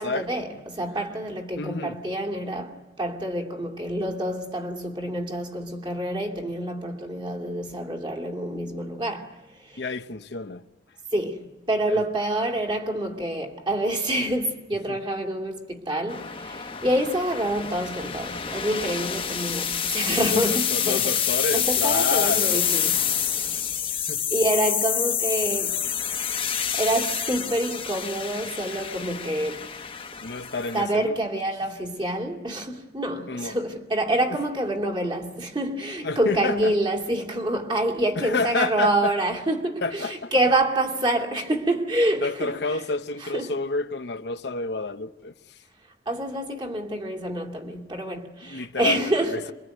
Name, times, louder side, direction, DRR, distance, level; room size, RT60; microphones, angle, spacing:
voice 1, 0.0-9.8 11.1-21.2 21.5-23.9 24.3-25.8 26.7-29.7 30.7-42.5 43.2-43.6 46.1-49.5, right 1 dB, 25° right, 2.6 m, -27 dB
voice 2, 1.6-2.0 9.8-10.6 11.9-12.0 14.9-15.0 20.3-22.6 23.9-24.2 30.2-31.2 33.3-33.6 34.3-34.4 36.0-36.7 38.2-39.1 39.8-40.3 42.2-45.3 48.4-49.5, left 3 dB, 65° left, 0.9 m, -29 dB
sound 1, 16.1-30.8, left 8 dB, 30° left, 1.2 m, -27 dB
26.5 x 23.0 x 9.3 m
head